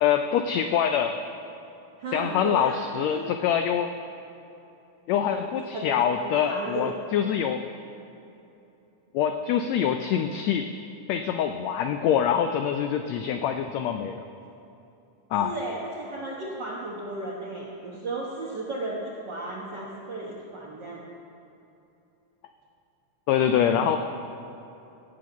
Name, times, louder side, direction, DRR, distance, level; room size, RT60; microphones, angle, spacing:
voice 1, 0.0-1.2 2.1-3.9 5.1-7.7 9.1-10.7 11.1-14.2 15.3-15.5 23.3-24.0, left 8 dB, 90° left, 7 dB, 1.5 m, -25 dB
voice 2, 2.0-3.2 5.3-5.5 5.7-5.9 6.2-6.9 15.4-21.0 23.5-23.9, right 2 dB, 65° right, -4 dB, 1.1 m, -35 dB
15.5 x 6.2 x 7.1 m, 2.8 s
omnidirectional pair, 3.6 m